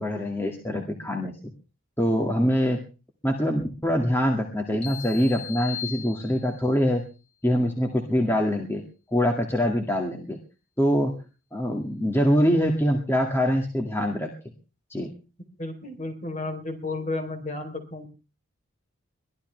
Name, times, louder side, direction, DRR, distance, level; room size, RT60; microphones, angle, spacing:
voice 1, 0.0-1.3 2.0-2.8 3.2-7.0 7.4-8.8 9.1-10.4 10.8-11.1 11.5-14.3 14.9-15.1, equal, 10° left, 1 dB, 2.0 m, -24 dB
sound 1, 4.8-6.8, left 10 dB, 55° left, 4.1 m, -38 dB
voice 2, 15.6-18.1, left 2 dB, 35° left, 5 dB, 3.6 m, -32 dB
23.0 x 15.0 x 3.4 m, 0.35 s
head